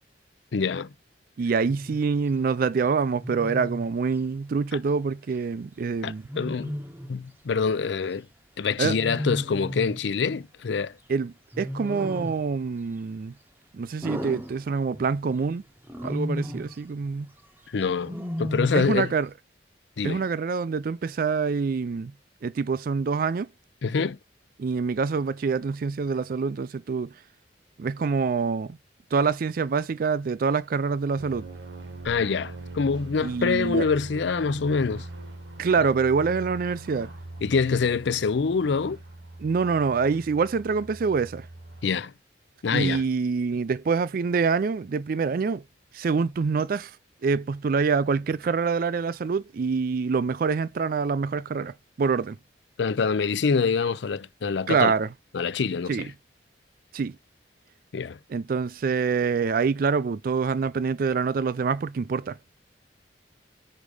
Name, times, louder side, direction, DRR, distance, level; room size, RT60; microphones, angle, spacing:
voice 1, 0.5-0.9 6.0-6.7 7.1-8.3 8.6-10.9 17.7-18.1 18.4-19.1 20.0-20.2 23.8-24.2 32.0-35.1 37.4-39.0 41.8-42.1 42.6-43.0 52.8-54.9 55.3-56.1 57.9-58.2, left 5 dB, 75° left, 0.5 m, -25 dB
voice 2, 1.4-6.2 8.8-9.0 11.1-13.3 13.7-15.6 16.0-17.3 18.7-19.3 20.0-22.1 22.4-23.5 24.6-27.1 27.8-28.8 29.1-31.5 33.2-33.9 35.6-37.1 39.4-41.5 42.7-45.6 45.9-47.0 47.2-52.4 54.7-55.1 55.9-56.1 56.9-57.2 58.3-62.4, right 5 dB, 50° right, 0.4 m, -26 dB
Wild animals, 1.6-2.0 3.2-3.9 6.3-7.2 9.0-10.0 11.5-12.5 14.0-15.1 15.9-16.7 18.0-19.1, equal, 10° right, 0.8 m, -33 dB
sound 1, 31.2-41.9, right 2 dB, 85° right, 1.8 m, -42 dB
5.3 x 5.1 x 4.9 m
head